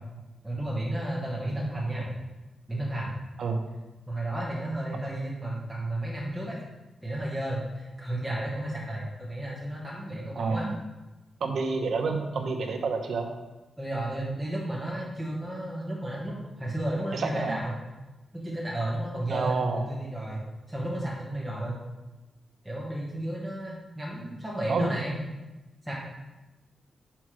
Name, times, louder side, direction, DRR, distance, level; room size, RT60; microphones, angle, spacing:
voice 1, 0.4-2.1 2.7-3.1 4.1-6.6 7.0-10.6 13.8-17.8 18.3-21.8 22.6-25.2 25.8-25.9, right 1 dB, ahead, -5 dB, 1.2 m, -33 dB
voice 2, 10.4-10.7 11.4-13.3 17.1-17.6 19.3-19.8 24.7-24.9, right 4 dB, 60° right, 4 dB, 0.9 m, -28 dB
6.3 x 5.8 x 4.8 m, 1.1 s
wide cardioid pair, 175°, 0 cm